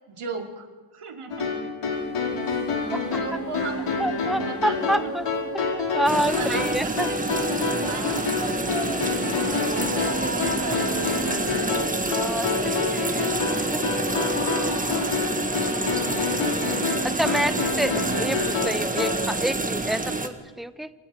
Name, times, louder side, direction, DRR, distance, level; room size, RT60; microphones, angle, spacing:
voice 1, 0.1-0.7 0.9-1.5 2.7-3.9 4.4-5.1 6.3-7.1 7.8-8.0 8.5-8.7 9.5-11.1 14.8-15.3 17.2-17.4 18.2-18.4, right 5 dB, 85° right, 3 dB, 3.5 m, -36 dB
sound 1, 1.3-19.2, left 4 dB, 85° left, 4.8 m, -28 dB
sound 2, 1.9-18.2, left 1 dB, 25° left, 3.7 m, -38 dB
voice 2, 4.0-5.3 5.5-7.1 8.4-9.0 12.1-13.3 13.7-13.9 17.0-20.9, right 1 dB, ahead, 12 dB, 0.8 m, -28 dB
sound 3, 6.1-20.3, right 2 dB, 15° right, 1.6 m, -28 dB
28.0 x 26.0 x 5.3 m, 1.3 s
wide cardioid pair, 140°, 50 cm